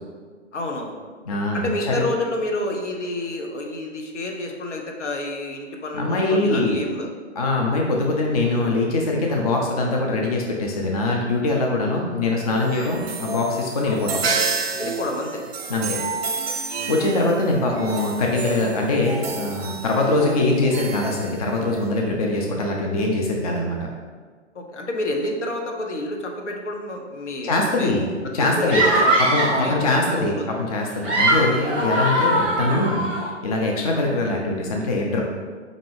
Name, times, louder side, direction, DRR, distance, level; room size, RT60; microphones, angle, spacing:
voice 1, 0.5-1.1 1.5-7.1 12.8-13.0 13.8-14.0 14.8-15.5 17.5-17.6 24.5-27.9 28.2-29.8 30.1-30.6 31.2-31.4 34.0-34.1, left 1 dB, 70° left, 2 dB, 0.8 m, -29 dB
voice 2, 1.3-2.0 5.9-6.8 7.4-14.2 15.7-16.0 16.6-23.8 27.4-28.1 28.3-28.8 29.2-35.2, left 2 dB, 35° left, 0 dB, 0.4 m, -23 dB
sound 1, 12.4-21.9, right 4 dB, 55° right, 0.5 m, -30 dB
sound 2, 28.7-29.7 30.8-33.2, right 1 dB, 5° right, 0.7 m, -21 dB
5.2 x 2.6 x 3.2 m, 1.5 s
figure-of-eight pair, 125°, 37 cm